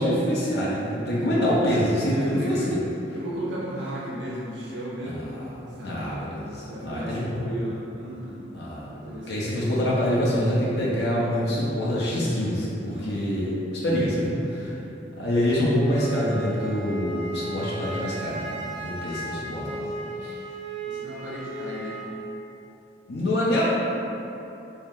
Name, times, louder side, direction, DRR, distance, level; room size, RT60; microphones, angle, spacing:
voice 1, 0.0-2.8 5.0-5.4 5.8-7.4 8.5-8.9 9.3-14.8 15.2-18.6 18.8-19.8 20.2-20.3 23.1-23.6, equal, 70° left, -7 dB, 0.6 m, -25 dB
voice 2, 2.1-2.8 3.1-5.4 5.7-6.2 6.7-8.5 8.9-9.7 12.9-13.2 15.2-15.6 19.1-20.2 20.9-22.0, equal, 85° right, -5 dB, 0.5 m, -35 dB
Wind instrument woodwind instrument, 15.8-22.1, right 1 dB, 30° right, 0.7 m, -35 dB
3.2 x 2.8 x 3.6 m, 3.0 s
head